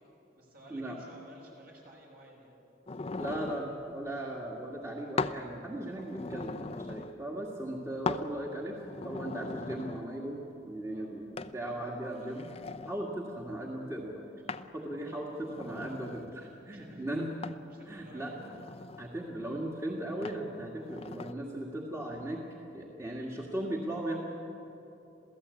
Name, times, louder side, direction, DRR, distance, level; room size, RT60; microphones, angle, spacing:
voice 1, 0.3-2.5 10.8-11.2 11.5-11.6 16.5-17.2 17.7-18.4, equal, 55° right, -1 dB, 6.6 m, -54 dB
sound 1, 2.9-3.7 5.2-5.4 5.8-7.1 8.1-8.3 8.8-10.1 11.4-11.5 12.1-13.0 14.5-14.7 15.3-16.3 17.4-17.7 18.3-19.1 20.2-20.4 20.9-21.3, left 3 dB, 35° left, 0.6 m, -39 dB
voice 2, 3.2-12.5 12.8-14.3 14.7-17.3 17.9-18.3 19.0-22.4 22.7-24.2, right 1 dB, 15° right, -2 dB, 2.0 m, -37 dB
28.0 x 16.0 x 8.5 m, 3.0 s
head